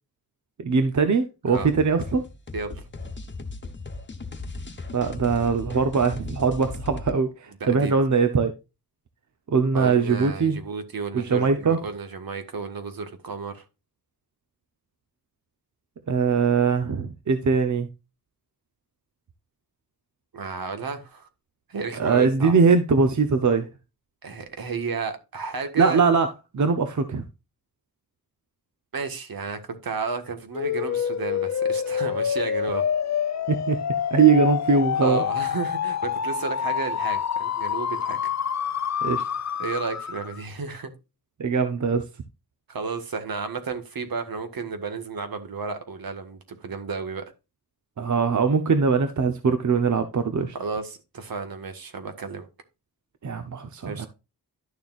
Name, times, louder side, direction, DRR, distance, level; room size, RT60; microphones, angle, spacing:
voice 1, 0.6-2.2 4.9-8.5 9.5-10.6 11.1-11.8 16.1-17.9 22.0-23.7 25.8-26.3 26.5-27.2 33.5-33.8 34.1-35.2 39.0-39.3 41.4-42.0 48.0-50.5 53.2-54.1, right 5 dB, 50° right, 0.9 m, -21 dB
sound 1, 1.5-7.2, left 3 dB, 30° left, 1.2 m, -37 dB
voice 2, 2.5-2.8 7.6-7.9 9.7-13.6 20.3-21.3 21.7-22.6 24.2-26.0 28.9-32.8 35.0-38.3 39.6-40.9 42.7-47.3 50.5-52.5 53.8-54.1, right 4 dB, 70° right, 1.7 m, -32 dB
sound 2, 30.5-40.4, left 8 dB, 50° left, 0.6 m, -27 dB
11.5 x 6.8 x 2.5 m
wide cardioid pair, 145°, 37 cm